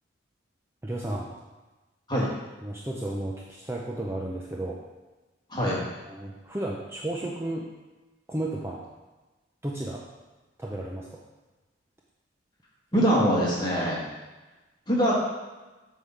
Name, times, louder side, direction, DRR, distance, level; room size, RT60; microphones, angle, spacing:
voice 1, 0.8-1.3 2.6-4.8 6.0-7.7 8.3-8.8 9.6-10.0 10.6-11.2, right 1 dB, 15° right, -3 dB, 0.6 m, -33 dB
voice 2, 12.9-14.0 14.9-15.1, equal, 20° left, -5 dB, 1.6 m, -23 dB
8.1 x 3.7 x 5.6 m, 1.2 s
head